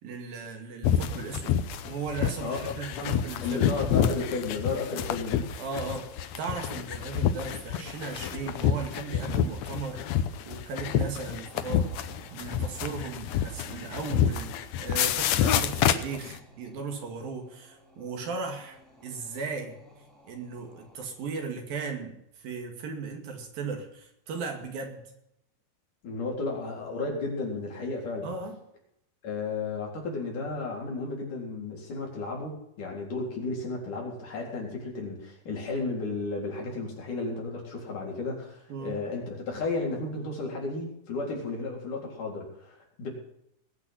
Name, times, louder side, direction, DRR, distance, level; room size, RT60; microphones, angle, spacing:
voice 1, 0.0-3.8 5.6-10.0 10.5-19.8 20.3-25.1 28.2-28.6 38.7-39.0, right 4 dB, 70° right, 4 dB, 4.0 m, -37 dB
sound 1, 0.8-16.4, left 9 dB, 80° left, 1.5 m, -28 dB
voice 2, 2.4-3.1 3.4-5.4 26.0-28.3 29.2-43.1, left 3 dB, 55° left, -1 dB, 5.4 m, -33 dB
sound 2, 11.4-21.3, equal, ahead, 3.2 m, -53 dB
20.5 x 8.5 x 5.6 m, 0.76 s
omnidirectional pair, 4.3 m